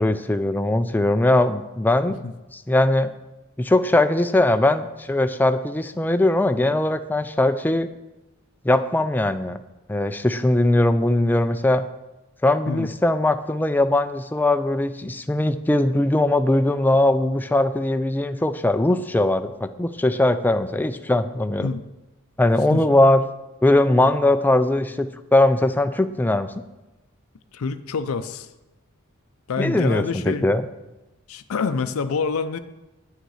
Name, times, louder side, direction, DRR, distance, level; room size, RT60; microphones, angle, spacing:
voice 1, 0.0-2.2 2.5-3.1 3.6-7.9 8.6-9.6 9.9-11.8 12.4-21.7 22.4-23.2 23.6-26.5 29.6-30.6, left 1 dB, 10° left, 9 dB, 0.3 m, -20 dB
voice 2, 27.5-28.5 29.5-30.4 31.3-32.6, left 4 dB, 70° left, 10 dB, 0.5 m, -26 dB
8.9 x 6.5 x 4.8 m, 1.0 s
head